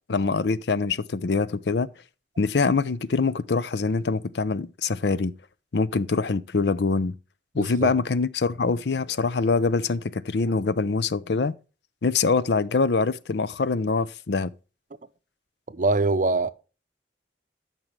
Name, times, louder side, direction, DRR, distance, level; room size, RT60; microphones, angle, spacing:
voice 1, 0.1-1.9 2.4-5.3 5.7-7.2 7.5-11.5 12.0-14.5, left 4 dB, 65° left, 0.6 m, -24 dB
voice 2, 7.6-7.9 15.7-16.5, right 3 dB, 45° right, 0.6 m, -23 dB
12.5 x 6.1 x 3.2 m
head